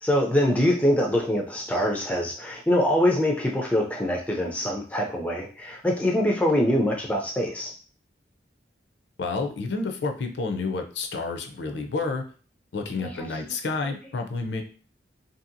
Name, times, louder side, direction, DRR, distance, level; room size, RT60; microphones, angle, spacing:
voice 1, 0.0-7.7 13.0-13.6 13.8-13.9, left 1 dB, 10° left, 0 dB, 0.3 m, -24 dB
voice 2, 9.2-12.2 12.7-14.6, left 3 dB, 70° left, 4 dB, 0.5 m, -30 dB
2.7 x 2.7 x 2.6 m, 0.40 s
head